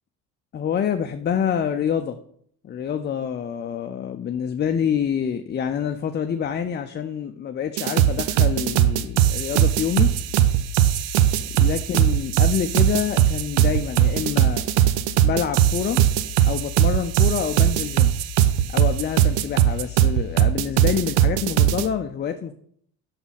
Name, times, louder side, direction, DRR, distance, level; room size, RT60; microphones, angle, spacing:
voice 1, 0.5-2.2 2.6-10.1 11.5-14.6 15.2-16.0 16.5-18.1 18.7-22.5, left 8 dB, 25° left, 7 dB, 0.4 m, -27 dB
sound 1, 7.8-21.8, right 11 dB, 80° right, 0.7 m, -19 dB
6.0 x 4.0 x 5.6 m, 0.64 s
supercardioid pair, 85°, 41 cm